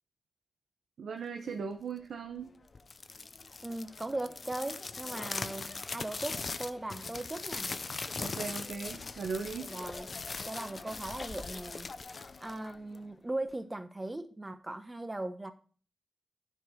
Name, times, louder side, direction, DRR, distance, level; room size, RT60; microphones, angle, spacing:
voice 1, 1.0-2.5 8.2-9.7, right 5 dB, 80° right, 0.9 m, -38 dB
sound 1, 2.8-13.1, left 4 dB, 45° left, 0.6 m, -40 dB
voice 2, 3.6-7.7 9.7-10.2 10.4-11.9 12.4-15.5, right 2 dB, 20° right, 1.0 m, -39 dB
9.9 x 4.8 x 4.9 m
cardioid pair, 85°, 0 cm